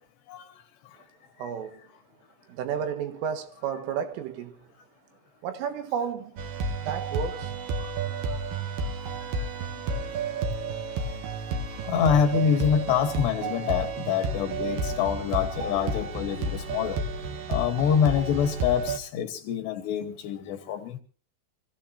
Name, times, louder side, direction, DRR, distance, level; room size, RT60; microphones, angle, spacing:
voice 1, 1.4-1.9 2.5-4.7 5.4-6.4 6.8-7.5, right 7 dB, 80° right, 4.3 m, -32 dB
sound 1, 6.4-19.0, right 3 dB, 60° right, 2.5 m, -31 dB
voice 2, 11.8-17.0 17.5-21.0, left 7 dB, 70° left, 3.0 m, -26 dB
26.5 x 16.0 x 2.8 m
omnidirectional pair, 5.7 m